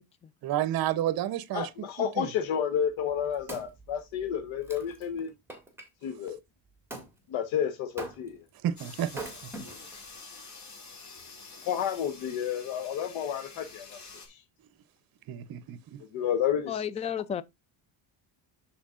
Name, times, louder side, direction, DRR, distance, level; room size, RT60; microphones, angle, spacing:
voice 1, 0.4-1.7 2.0-2.3 8.6-9.2 15.3-16.0, right 11 dB, 50° right, 0.8 m, -30 dB
voice 2, 1.5-5.3 6.0-6.4 7.3-8.4 11.7-14.0 14.3-14.4 16.1-16.8, left 9 dB, 85° left, 1.3 m, -31 dB
Wood, 2.9-5.9 6.9-7.1 8.0-8.5 9.1-10.1 10.7-10.8, right 2 dB, 5° right, 2.1 m, -43 dB
sound 1, 8.8-14.3, left 4 dB, 35° left, 2.7 m, -48 dB
voice 3, 16.7-17.4, left 8 dB, 15° left, 0.3 m, -33 dB
13.0 x 4.6 x 2.5 m
cardioid pair, 145°, 46 cm